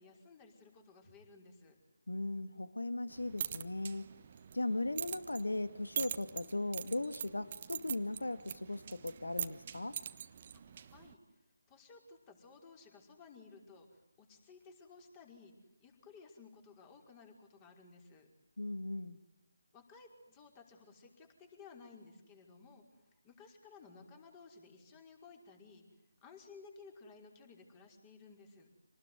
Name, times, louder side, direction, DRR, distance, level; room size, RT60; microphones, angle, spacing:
voice 1, 0.0-1.8 10.5-10.6 10.9-11.2 11.7-15.5 15.8-18.3 19.7-25.8 26.2-28.7, left 4 dB, 20° left, 3 dB, 5.4 m, -57 dB
voice 2, 2.1-4.1 4.5-10.0 18.6-19.2, left 2 dB, 75° left, 12 dB, 1.9 m, -38 dB
sound 1, 3.1-11.1, right 7 dB, 35° right, 1.4 m, -44 dB
28.0 x 20.0 x 9.6 m, 0.98 s
figure-of-eight pair, 155°, 0 cm